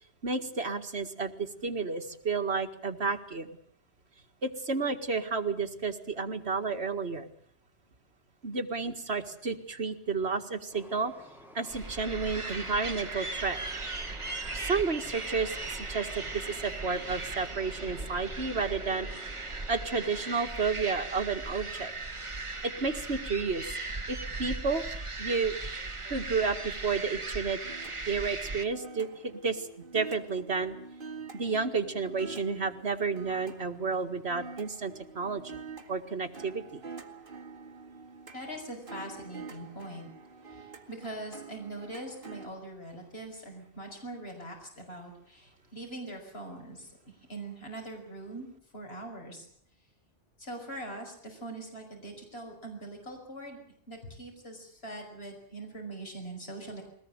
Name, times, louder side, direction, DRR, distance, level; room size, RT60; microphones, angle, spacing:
voice 1, 0.2-3.5 4.4-7.3 8.4-11.1 11.5-13.6 14.5-19.1 19.7-21.9 22.6-23.7 24.1-24.8 25.2-25.6 26.1-27.6 28.1-29.7 29.9-30.7 31.3-35.6 35.9-36.8, right 4 dB, 70° right, 5 dB, 2.2 m, -31 dB
Train, 10.7-20.4, right 1 dB, ahead, 3.8 m, -51 dB
sound 1, 11.7-28.6, right 3 dB, 30° right, 1.3 m, -38 dB
sound 2, 27.6-42.5, right 5 dB, 50° right, 2.3 m, -47 dB
voice 2, 38.3-40.1 40.5-48.5 48.7-49.5 50.4-53.6 53.9-56.8, right 1 dB, 65° left, 2 dB, 5.7 m, -42 dB
22.5 x 19.0 x 8.8 m, 0.63 s
omnidirectional pair, 1.1 m